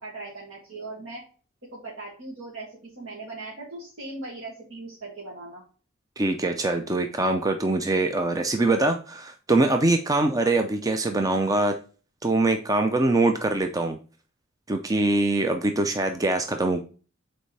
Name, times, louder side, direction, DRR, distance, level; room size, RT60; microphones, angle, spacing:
voice 1, 0.0-1.2 1.7-5.6, right 2 dB, 70° right, -7 dB, 2.0 m, -39 dB
voice 2, 6.2-11.8 12.2-14.0 14.7-16.8, right 2 dB, 15° right, 5 dB, 0.5 m, -23 dB
7.7 x 4.4 x 3.3 m, 0.37 s
head